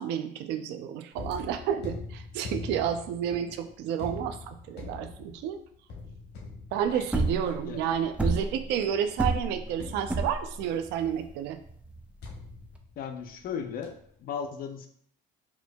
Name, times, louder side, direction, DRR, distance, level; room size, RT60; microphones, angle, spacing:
voice 1, 0.0-5.6 6.7-11.6, right 9 dB, 90° right, 9 dB, 0.4 m, -30 dB
sound 1, 1.1-9.1 9.8-10.8 12.2-13.5 13.8-14.2, left 4 dB, 75° left, 0.9 m, -43 dB
sound 2, 6.8-12.8, right 2 dB, 5° right, 0.3 m, -30 dB
voice 2, 13.0-14.9, left 7 dB, 60° left, 5 dB, 0.5 m, -36 dB
4.3 x 2.6 x 2.2 m, 0.62 s
cardioid pair, 110°, 17 cm